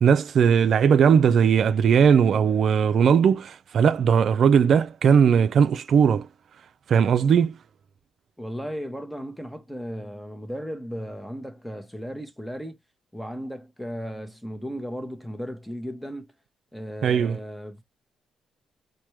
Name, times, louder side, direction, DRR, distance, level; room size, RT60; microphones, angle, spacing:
voice 1, 0.0-6.3 6.9-7.6 17.0-17.4, right 7 dB, 60° right, 0.4 m, -19 dB
voice 2, 8.4-12.8 13.1-16.3 16.7-17.8, equal, 5° left, 0.8 m, -35 dB
4.4 x 2.2 x 3.1 m
cardioid pair, 85°, 0 cm